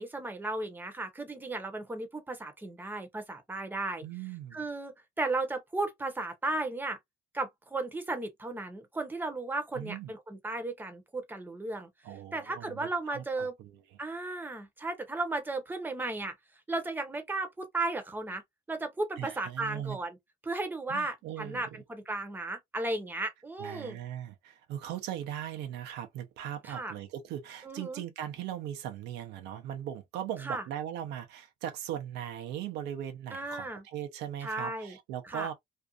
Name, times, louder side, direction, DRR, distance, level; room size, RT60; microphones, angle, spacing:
voice 1, 0.0-4.1 4.5-7.0 7.3-11.9 12.3-13.5 14.0-16.3 16.7-18.4 18.7-20.2 20.4-24.0 26.6-26.9 27.6-28.0 30.4-30.6 33.3-33.8 34.4-35.0 35.2-35.5, right 2 dB, 10° right, 0.8 m, -35 dB
voice 2, 4.0-4.7 9.7-10.1 12.0-13.8 19.2-20.0 20.9-21.8 23.6-35.5, right 10 dB, 85° right, 0.6 m, -39 dB
2.6 x 2.4 x 2.3 m
cardioid pair, 110°, 17 cm